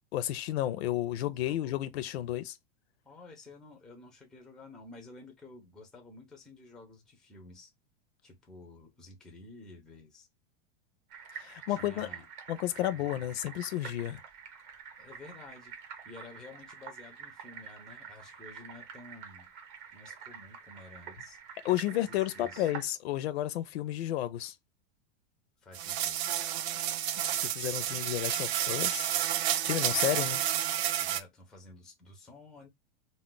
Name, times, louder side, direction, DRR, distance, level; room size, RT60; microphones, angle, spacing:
voice 1, 0.1-2.6 11.4-12.1 12.5-14.2 21.6-24.5 27.4-29.1 29.6-30.4, left 13 dB, 75° left, 0.5 m, -32 dB
voice 2, 3.0-7.7 8.2-10.3 11.7-12.3 12.9-13.0 15.0-15.7 16.1-19.5 19.9-21.4 21.7-22.7 25.6-26.2 30.9-32.7, left 2 dB, ahead, 0.4 m, -51 dB
sound 1, 11.1-22.9, right 7 dB, 35° right, 0.7 m, -47 dB
sound 2, 25.7-31.2, right 11 dB, 90° right, 0.5 m, -30 dB
2.4 x 2.1 x 3.7 m
supercardioid pair, 150°, 31 cm